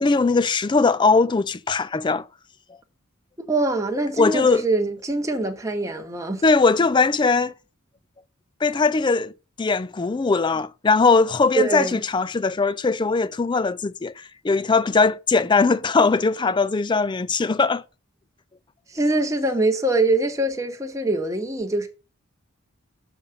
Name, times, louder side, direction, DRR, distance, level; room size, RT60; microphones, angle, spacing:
voice 1, 0.0-2.3 4.2-4.7 6.4-7.5 8.6-9.3 9.6-17.8, left 4 dB, 20° left, 0.3 m, -20 dB
voice 2, 3.5-6.4 11.5-12.0 18.9-21.9, right 2 dB, 15° right, 1.2 m, -23 dB
7.0 x 5.2 x 6.8 m
head